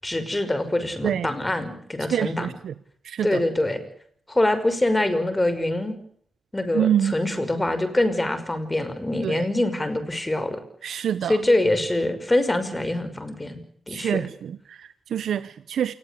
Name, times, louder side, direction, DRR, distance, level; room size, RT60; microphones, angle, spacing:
voice 1, 0.0-2.5 3.2-3.8 4.3-6.0 6.5-10.6 11.2-13.6 13.9-14.2, left 1 dB, 15° left, 5.7 m, -24 dB
voice 2, 2.1-2.7 3.0-3.4 6.7-7.1 9.2-9.4 10.8-11.4 13.9-15.9, right 9 dB, 80° right, 1.1 m, -26 dB
28.0 x 20.5 x 8.5 m
cardioid pair, 100°, 0 cm